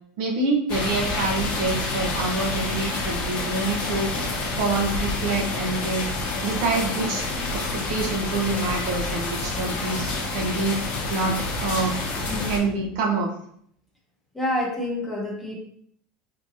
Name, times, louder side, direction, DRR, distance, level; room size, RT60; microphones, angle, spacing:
voice 1, 0.2-4.1 4.6-6.0 6.4-7.2 7.5-10.8 11.1-12.0 12.5-13.3, right 3 dB, 70° right, 0 dB, 0.7 m, -26 dB
sound 1, 0.7-12.6, left 3 dB, 40° left, 0.9 m, -28 dB
voice 2, 12.3-12.9 14.3-15.6, left 1 dB, 5° left, -4 dB, 0.8 m, -28 dB
3.7 x 2.8 x 2.6 m, 0.65 s
supercardioid pair, 150°, 3 cm